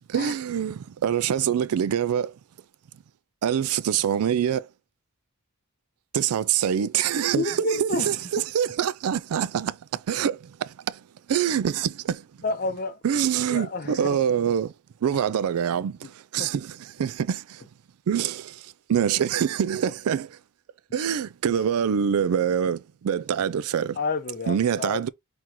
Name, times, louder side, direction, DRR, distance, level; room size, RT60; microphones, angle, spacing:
voice 1, 0.1-2.4 3.4-4.7 6.1-11.0 11.3-12.3 13.0-14.7 15.0-17.6 18.1-20.4 20.9-24.0 24.5-25.1, right 8 dB, 75° right, 0.3 m, -25 dB
voice 2, 7.1-8.2 12.4-13.0 13.5-14.2 16.4-16.5 24.0-25.0, left 3 dB, 40° left, 0.7 m, -29 dB
4.3 x 3.7 x 2.9 m
head